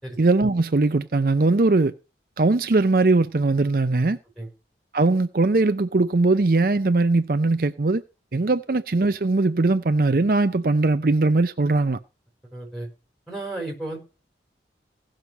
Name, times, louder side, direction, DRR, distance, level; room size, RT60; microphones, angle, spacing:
voice 1, 0.2-1.9 2.4-4.2 4.9-8.0 8.3-12.0, right 3 dB, 55° right, 0.6 m, -20 dB
voice 2, 12.4-12.9 13.3-14.0, right 2 dB, ahead, 5.0 m, -33 dB
16.5 x 6.4 x 5.3 m
head